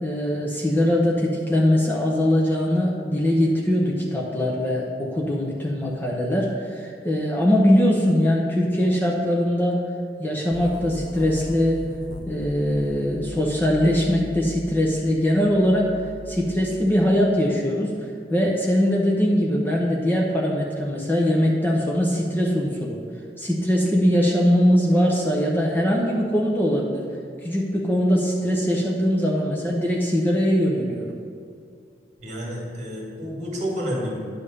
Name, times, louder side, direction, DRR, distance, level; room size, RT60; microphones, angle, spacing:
voice 1, 0.0-9.8 10.2-11.8 12.3-15.9 16.3-18.0 18.3-23.0 23.4-27.1 27.4-31.2, equal, 10° left, -3 dB, 0.7 m, -21 dB
sound 1, 10.5-17.3, left 2 dB, 50° left, 0.5 m, -38 dB
voice 2, 32.2-34.2, equal, 40° right, -3 dB, 2.0 m, -30 dB
9.8 x 3.5 x 6.6 m, 2.3 s
head